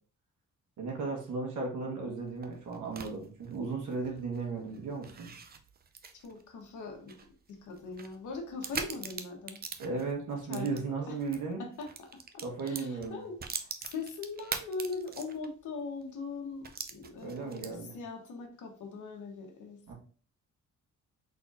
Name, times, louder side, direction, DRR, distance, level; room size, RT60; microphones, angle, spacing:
voice 1, 0.8-5.3 9.8-11.6 12.4-13.2 17.2-18.0 19.9-20.0, right 4 dB, 85° right, 0 dB, 1.5 m, -35 dB
sound 1, 2.2-11.4 11.7-15.6 16.0-16.1 16.6-18.0, right 6 dB, 30° right, 0.5 m, -43 dB
voice 2, 6.1-7.1 7.5-9.6 10.5-10.7 11.1-11.2 11.6-19.9, left 4 dB, 80° left, 3 dB, 1.3 m, -41 dB
4.0 x 4.0 x 2.6 m, 0.41 s
cardioid pair, 130°, 30 cm